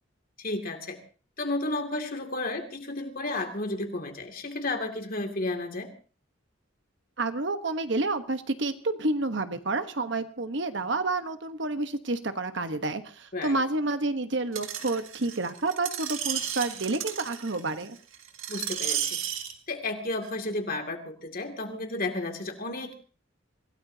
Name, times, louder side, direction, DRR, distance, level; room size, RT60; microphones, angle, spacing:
voice 1, 0.4-1.0 1.4-5.9 13.3-13.6 18.5-19.2 19.7-22.9, left 2 dB, 45° left, 5 dB, 2.5 m, -32 dB
voice 2, 7.2-18.0, right 2 dB, 60° right, 9 dB, 1.2 m, -29 dB
Screech, 14.6-19.5 20.2-20.3, right 9 dB, 80° right, 2.0 m, -33 dB
26.0 x 16.5 x 2.8 m, 0.38 s
head